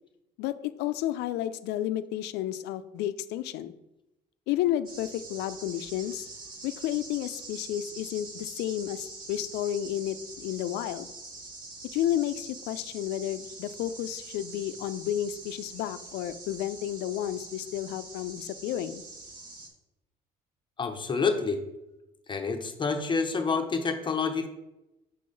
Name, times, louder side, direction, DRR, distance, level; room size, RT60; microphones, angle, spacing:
voice 1, 0.4-3.7 4.5-6.3 6.6-11.1 11.9-19.0, left 12 dB, 85° left, 12 dB, 0.4 m, -31 dB
sound 1, 4.9-19.7, right 3 dB, 55° right, 1.5 m, -44 dB
voice 2, 20.8-21.6 22.3-24.5, left 4 dB, 30° left, 5 dB, 0.8 m, -28 dB
6.7 x 3.8 x 5.1 m, 0.94 s
cardioid pair, 110°, 17 cm